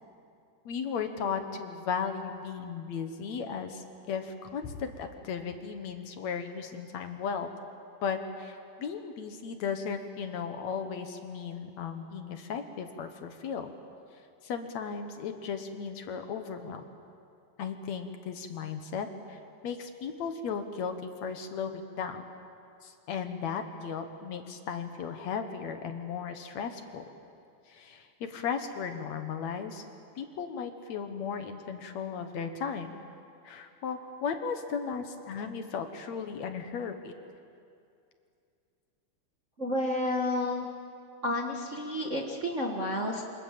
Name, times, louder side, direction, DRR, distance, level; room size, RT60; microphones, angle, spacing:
voice 1, 0.7-7.5 8.0-13.7 14.4-16.8 17.6-21.0 21.2-22.2 22.8-27.0 27.7-29.8 30.2-33.0 33.4-37.1, left 6 dB, 65° left, 7 dB, 2.4 m, -36 dB
voice 2, 39.6-40.7 41.2-43.2, left 1 dB, 30° right, 0 dB, 1.5 m, -30 dB
27.0 x 25.5 x 7.6 m, 2.5 s
omnidirectional pair, 3.6 m